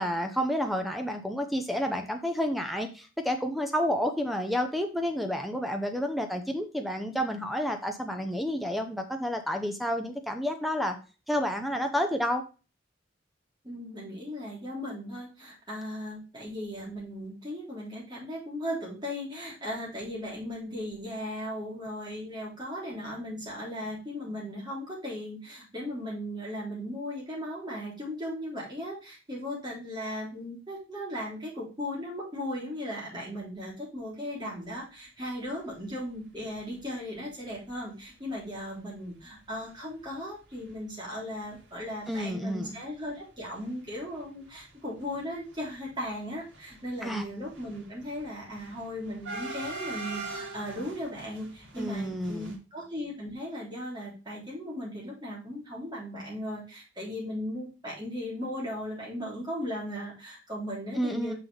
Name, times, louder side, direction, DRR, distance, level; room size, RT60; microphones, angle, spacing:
voice 1, 0.0-11.0 11.3-12.4 42.1-42.8 47.0-47.2 51.8-52.6 60.9-61.3, equal, ahead, 5 dB, 0.8 m, -30 dB
voice 2, 13.6-61.3, equal, 25° right, -5 dB, 3.6 m, -37 dB
sound 1, 36.6-36.8 37.3-37.4 37.5-37.7 38.5-38.6 39.0-39.2 39.5-39.6 40.0-42.2 42.4-43.2 43.4-52.6, right 3 dB, 70° right, 2.4 m, -43 dB
6.1 x 5.8 x 3.3 m, 0.32 s
head